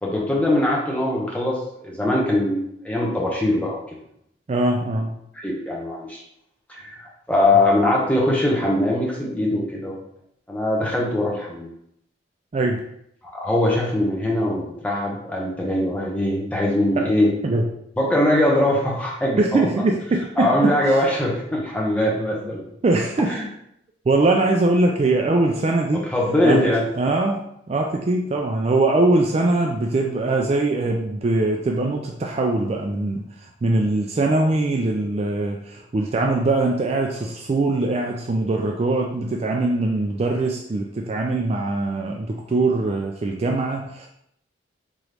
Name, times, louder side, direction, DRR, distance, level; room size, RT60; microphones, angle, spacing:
voice 1, 0.0-3.8 5.4-6.2 6.7-10.0 10.5-11.7 13.4-17.3 18.0-19.6 20.4-22.6 23.3-23.4 26.1-26.8, left 1 dB, 5° left, -3 dB, 0.8 m, -21 dB
voice 2, 4.5-5.2 12.5-12.8 16.9-17.0 17.4-17.7 19.4-21.1 22.8-23.4 24.1-26.1 26.4-26.7 26.9-44.1, right 2 dB, 35° right, 1 dB, 0.3 m, -22 dB
3.8 x 3.0 x 3.3 m, 0.75 s
head